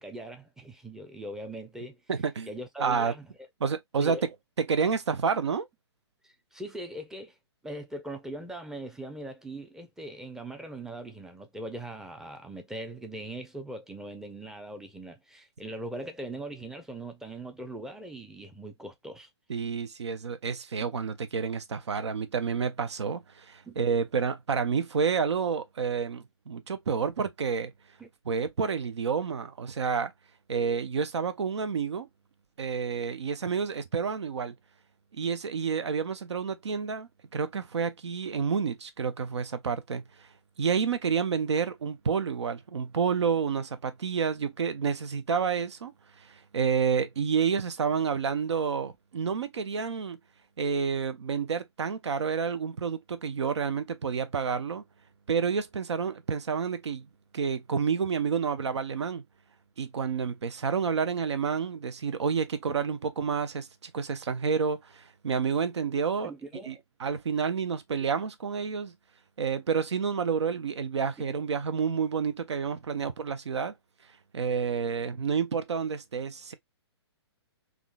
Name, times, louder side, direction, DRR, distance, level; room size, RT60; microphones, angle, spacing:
voice 1, 0.0-2.0 2.5-3.3 4.0-4.3 6.5-7.3 7.6-19.3 20.8-20.9 23.6-23.8 28.0-28.1 66.2-66.8, right 1 dB, 5° right, 0.5 m, -40 dB
voice 2, 2.1-2.5 2.8-3.1 3.6-5.7 19.5-27.7 28.3-30.1 30.5-32.1 32.6-34.5 35.1-40.3 40.6-50.2 50.6-54.8 55.3-57.1 57.3-59.2 59.8-66.3 66.7-68.9 69.4-73.7 74.3-76.5, right 6 dB, 80° right, 0.7 m, -29 dB
3.7 x 2.4 x 2.3 m
hypercardioid pair, 130°, 14 cm